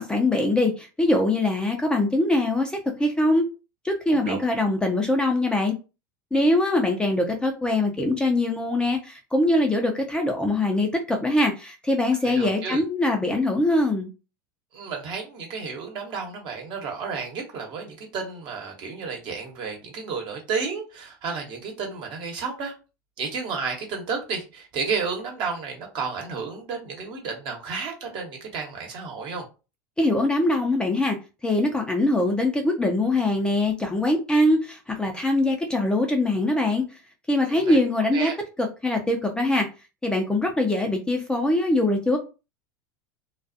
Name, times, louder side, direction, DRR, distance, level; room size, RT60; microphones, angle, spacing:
voice 1, 0.0-3.5 3.8-5.7 6.3-14.1 30.0-31.2 31.4-36.8 37.3-38.3 38.6-39.7 40.0-42.2, left 1 dB, 10° left, 2 dB, 0.5 m, -23 dB
voice 2, 4.1-4.4 12.2-12.8 14.7-22.7 23.2-29.4 37.4-38.3, right 5 dB, 45° right, 1 dB, 1.0 m, -32 dB
2.3 x 2.3 x 2.6 m, 0.31 s
hypercardioid pair, 85°, 11 cm